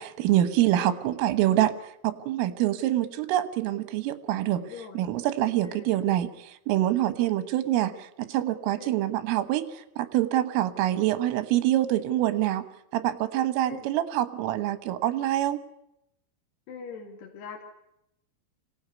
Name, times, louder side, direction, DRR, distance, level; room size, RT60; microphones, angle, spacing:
voice 1, 0.0-1.7 2.0-4.7 5.0-6.3 6.7-12.6 12.9-15.6, right 13 dB, 85° right, 11 dB, 3.8 m, -25 dB
voice 2, 4.6-5.0 5.6-6.0 8.8-8.9 13.7-13.9 16.7-17.6, left 5 dB, 60° left, 1 dB, 4.1 m, -42 dB
25.5 x 18.0 x 9.6 m, 0.83 s
omnidirectional pair, 5.7 m